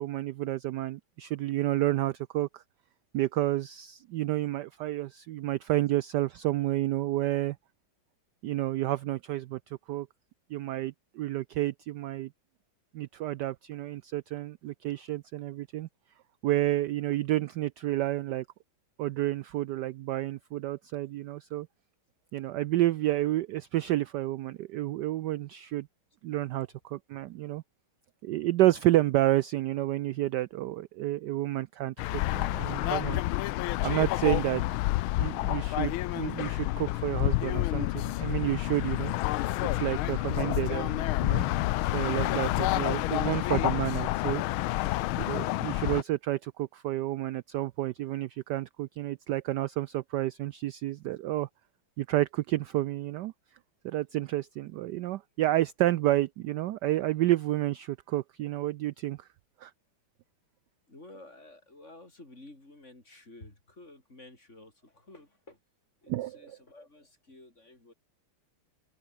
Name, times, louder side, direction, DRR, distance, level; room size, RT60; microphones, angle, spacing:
voice 1, 0.0-2.6 3.1-7.6 8.4-10.1 10.5-12.3 12.9-15.9 16.4-18.4 19.0-21.7 22.3-25.9 26.2-27.6 28.2-33.2 33.8-34.7 35.2-39.1 39.6-41.5 41.8-44.4 45.2-51.5 52.0-53.3 53.8-59.3 59.6-59.7 66.1-66.3, right 15 dB, 90° right, 0.9 m, -30 dB
sound 1, 32.0-46.0, left 17 dB, 75° left, 1.4 m, -29 dB
voice 2, 60.9-65.6 66.0-67.9, left 2 dB, 30° left, 6.8 m, -52 dB
omnidirectional pair, 2.4 m